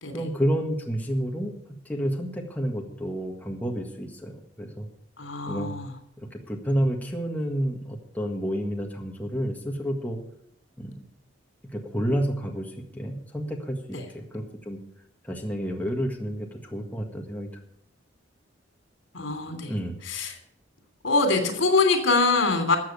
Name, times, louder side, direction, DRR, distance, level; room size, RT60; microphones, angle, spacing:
voice 1, 0.1-1.5 1.9-4.9 5.5-5.7 6.2-10.2 10.8-11.0 11.7-14.8 15.2-17.5 19.7-19.9, equal, 10° left, 1 dB, 1.6 m, -30 dB
voice 2, 5.2-5.9 13.9-14.0 19.1-19.7 20.0-20.4 21.0-22.8, left 3 dB, 80° left, 6 dB, 3.1 m, -23 dB
13.5 x 7.6 x 8.4 m, 0.72 s
head